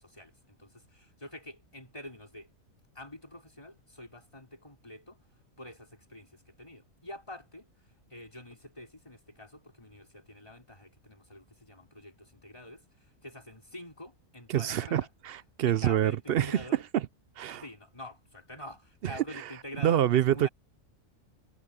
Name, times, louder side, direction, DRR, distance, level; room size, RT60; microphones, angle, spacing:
voice 1, 0.0-2.5 2.9-5.3 5.6-15.1 15.7-16.8 17.6-20.5, left 1 dB, 20° left, 4.8 m, -47 dB
voice 2, 14.5-16.6 16.9-17.0 17.4-17.6 19.0-19.4 19.8-20.5, right 11 dB, 65° right, 0.6 m, -27 dB
omnidirectional pair, 1.4 m